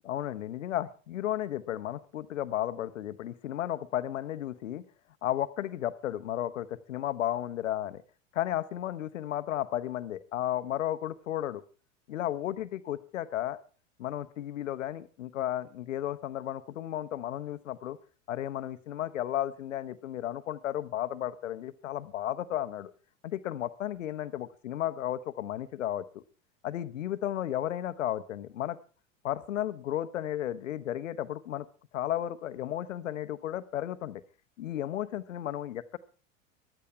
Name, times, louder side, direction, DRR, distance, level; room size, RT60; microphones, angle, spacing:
voice 1, 0.0-4.8 5.2-8.0 8.3-11.6 12.1-13.6 14.0-18.0 18.3-22.9 23.2-26.2 26.6-28.8 29.2-31.7 31.9-34.2 34.6-36.0, left 12 dB, 75° left, 14 dB, 1.1 m, -33 dB
15.0 x 12.0 x 4.6 m, 0.37 s
figure-of-eight pair, 85°, 39 cm